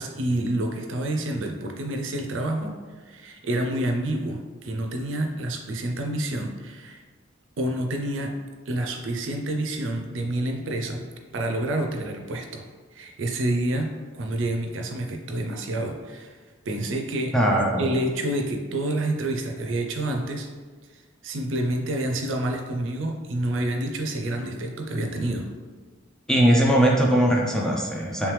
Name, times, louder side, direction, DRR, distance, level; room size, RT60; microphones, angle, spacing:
voice 1, 0.0-7.0 7.6-8.3 8.7-11.0 11.3-12.6 12.9-16.4 16.7-17.3 17.8-20.5 20.9-25.5, right 1 dB, 80° right, 4 dB, 0.5 m, -28 dB
voice 2, 17.3-17.9 26.3-28.3, right 1 dB, 5° left, -2 dB, 0.4 m, -20 dB
3.3 x 3.2 x 3.1 m, 1.4 s
head